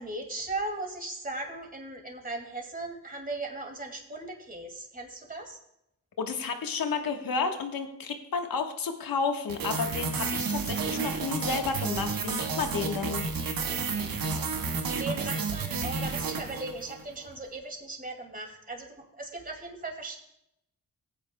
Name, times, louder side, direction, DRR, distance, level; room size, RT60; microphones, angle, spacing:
voice 1, 0.0-5.6 10.9-11.3 14.2-20.2, right 2 dB, 25° right, 3 dB, 2.2 m, -38 dB
voice 2, 6.2-13.2, left 5 dB, 75° left, 5 dB, 1.3 m, -31 dB
sound 1, 9.5-17.1, right 4 dB, 80° right, 1.2 m, -31 dB
15.5 x 9.0 x 2.2 m, 0.78 s
cardioid pair, 60°, 35 cm